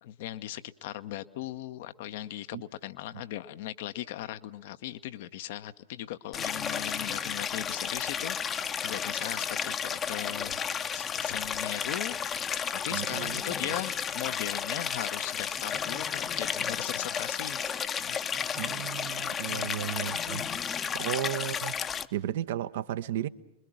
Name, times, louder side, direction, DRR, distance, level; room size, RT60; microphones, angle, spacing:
voice 1, 0.0-8.4 8.8-10.6 10.9-12.2 12.8-17.7 18.0-18.2 19.4-19.7 20.4-20.5, left 13 dB, 55° left, 0.9 m, -38 dB
Stream, 6.3-22.1, left 7 dB, 25° left, 0.8 m, -32 dB
voice 2, 12.9-13.4 13.7-13.8 18.6-20.5 20.9-21.8 22.1-23.3, right 11 dB, 55° right, 0.8 m, -34 dB
28.5 x 22.0 x 6.3 m
figure-of-eight pair, 90°, 0 cm